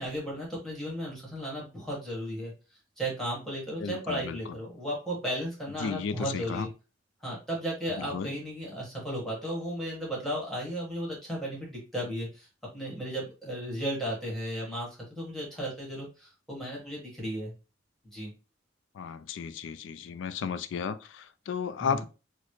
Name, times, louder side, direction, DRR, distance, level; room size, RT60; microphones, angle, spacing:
voice 1, 0.0-2.5 3.0-6.7 7.2-12.5 12.7-17.5 18.1-18.3 21.8-22.0, equal, ahead, 1.3 m, -35 dB
voice 2, 3.8-4.4 5.8-6.7 8.0-8.3 18.9-22.1, left 6 dB, 75° left, 0.3 m, -34 dB
4.0 x 2.1 x 3.1 m
head